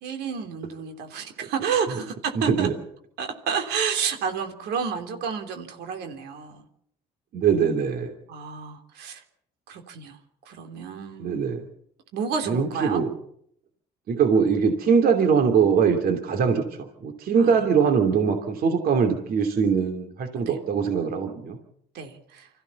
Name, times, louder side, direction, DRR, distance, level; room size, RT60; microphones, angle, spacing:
voice 1, 0.0-2.7 3.2-6.7 7.4-7.6 8.3-9.2 9.7-10.2 10.5-11.4 12.1-13.0 17.4-17.5 20.5-20.6 21.9-22.5, right 6 dB, 80° right, 5 dB, 3.4 m, -30 dB
voice 2, 7.3-8.1 11.2-11.6 12.5-13.1 14.1-21.6, right 6 dB, 60° right, 6 dB, 2.9 m, -22 dB
25.5 x 15.5 x 7.1 m, 0.68 s
cardioid pair, 110°, 17 cm